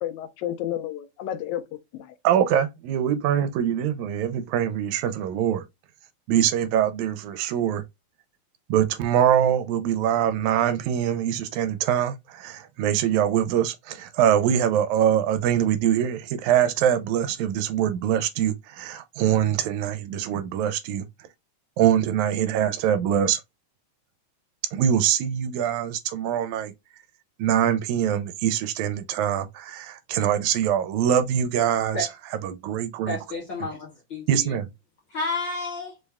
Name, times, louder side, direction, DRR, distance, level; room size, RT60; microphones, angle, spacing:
voice 1, 0.0-2.2, left 11 dB, 85° left, 2.1 m, -31 dB
voice 2, 2.3-5.6 6.3-7.8 8.7-21.1 21.8-23.4 24.7-26.7 27.4-33.2 33.6-33.7 34.3-34.7, right 9 dB, 85° right, 1.9 m, -23 dB
voice 3, 33.1-34.5 35.1-35.9, left 2 dB, 60° left, 1.2 m, -31 dB
5.1 x 2.2 x 3.4 m
omnidirectional pair, 3.4 m